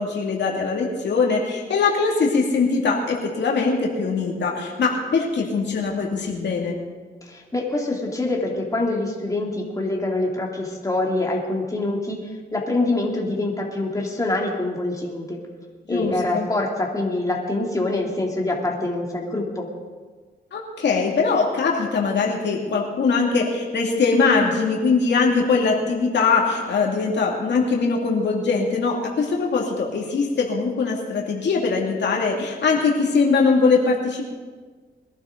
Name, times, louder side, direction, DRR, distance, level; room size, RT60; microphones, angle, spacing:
voice 1, 0.0-6.8 15.9-16.5 20.5-34.2, left 4 dB, 70° left, -1 dB, 2.4 m, -21 dB
voice 2, 7.2-15.4 15.9-19.7, left 2 dB, 20° left, -2 dB, 3.0 m, -25 dB
21.5 x 11.5 x 3.9 m, 1.4 s
cardioid pair, 80°, 19 cm